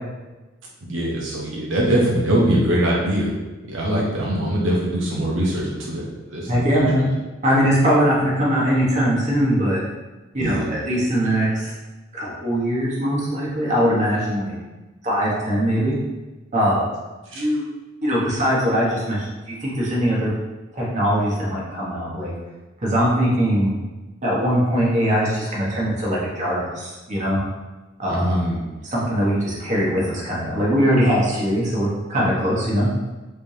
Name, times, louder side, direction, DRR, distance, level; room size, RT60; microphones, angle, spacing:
voice 1, 0.8-3.3 3.6-7.1 10.4-10.7 17.3-17.4 28.1-28.6, right 1 dB, 80° right, -4 dB, 0.8 m, -22 dB
voice 2, 6.5-7.1 7.4-9.8 10.3-11.7 12.1-14.5 15.0-15.9 16.5-16.8 17.3-17.7 18.0-20.3 20.7-22.3 22.8-23.7 24.2-27.4 28.0-28.4 28.8-32.9, equal, 40° right, -5 dB, 1.1 m, -21 dB
3.4 x 3.3 x 2.7 m, 1.1 s
head